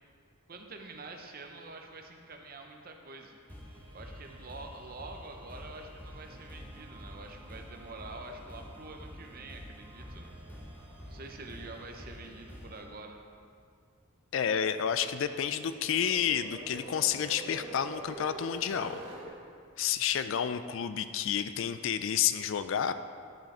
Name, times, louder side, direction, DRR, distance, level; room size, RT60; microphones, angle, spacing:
voice 1, 0.5-3.3 3.9-10.3 11.0-13.2, right 3 dB, 45° right, 3 dB, 0.7 m, -46 dB
sound 1, 3.5-12.8, equal, 10° left, 1.5 m, -48 dB
voice 2, 14.3-19.0 19.8-22.9, left 8 dB, 60° left, 11 dB, 0.3 m, -30 dB
sound 2, 14.6-19.3, right 1 dB, 25° right, 1.5 m, -45 dB
10.5 x 5.7 x 4.3 m, 2.2 s
head